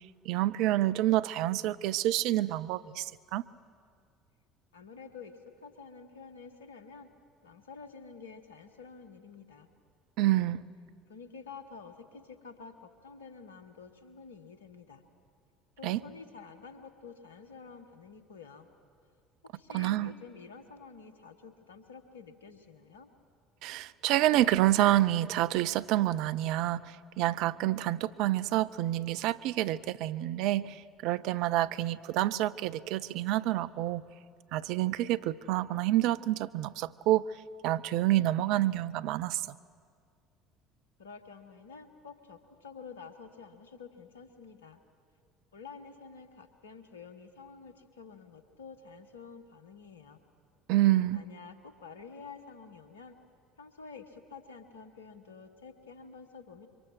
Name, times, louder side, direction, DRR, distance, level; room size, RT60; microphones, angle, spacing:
voice 1, 0.3-3.4 10.2-10.6 15.8-16.0 19.7-20.1 23.6-34.0 34.5-37.3 37.6-39.4 50.7-51.2, right 15 dB, 60° right, 16 dB, 0.5 m, -28 dB
voice 2, 4.7-7.1 7.4-9.7 11.1-15.0 15.8-18.7 19.5-23.1 41.0-44.8 45.5-50.2 51.1-53.2 53.6-56.7, left 5 dB, 80° left, 10 dB, 1.3 m, -49 dB
25.5 x 24.0 x 6.0 m, 2.2 s
figure-of-eight pair, 60°, 0 cm